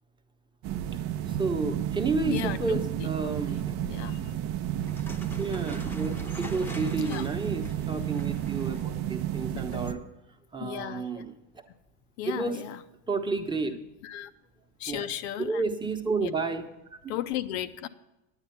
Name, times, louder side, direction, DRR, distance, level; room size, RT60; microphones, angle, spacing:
sound 1, 0.6-9.9, right 11 dB, 40° right, 0.6 m, -32 dB
voice 1, 1.3-3.7 5.4-10.0 10.5-11.6 12.3-12.6 13.1-13.7 14.9-15.1 15.4-16.6 16.9-17.0, right 3 dB, 15° right, 5 dB, 1.0 m, -31 dB
voice 2, 2.3-3.1 3.9-4.4 7.0-7.2 10.6-11.2 12.2-12.8 14.0-14.3 14.8-15.6 16.2-16.3 17.1-17.9, left 12 dB, 65° left, 11 dB, 0.7 m, -35 dB
sound 2, 4.8-9.0, left 1 dB, 5° left, 0.9 m, -44 dB
9.9 x 9.0 x 5.8 m, 0.94 s
supercardioid pair, 115°, 35 cm